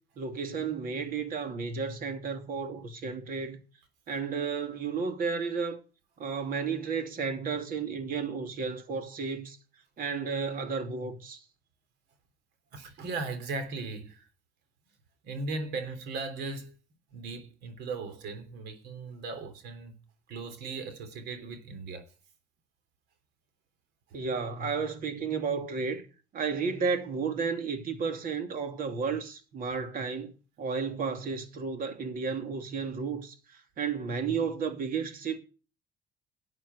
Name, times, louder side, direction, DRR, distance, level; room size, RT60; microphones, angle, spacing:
voice 1, 0.2-3.6 4.1-5.8 6.2-9.6 10.0-11.4 24.1-26.0 26.3-33.4 33.8-35.4, right 5 dB, 55° right, 2.8 m, -32 dB
voice 2, 12.7-14.3 15.2-16.7 17.1-20.0 20.3-22.1, right 3 dB, 80° right, 3.4 m, -37 dB
12.5 x 8.0 x 8.3 m
cardioid pair, 110°, 17 cm